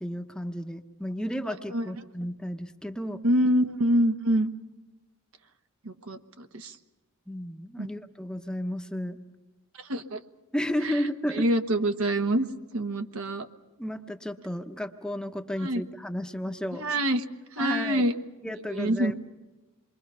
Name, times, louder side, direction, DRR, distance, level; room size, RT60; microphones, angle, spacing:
voice 1, 0.0-3.2 7.3-9.2 10.5-11.5 13.8-16.9 17.6-18.1 18.4-19.1, equal, 5° left, 6 dB, 0.8 m, -33 dB
voice 2, 3.2-4.5 5.8-6.8 7.8-7.9 9.8-10.2 10.8-12.5 12.7-13.5 15.6-15.8 16.8-17.2 17.5-18.2 18.7-19.1, right 1 dB, 70° right, 7 dB, 1.2 m, -26 dB
28.0 x 22.5 x 5.6 m, 1.2 s
head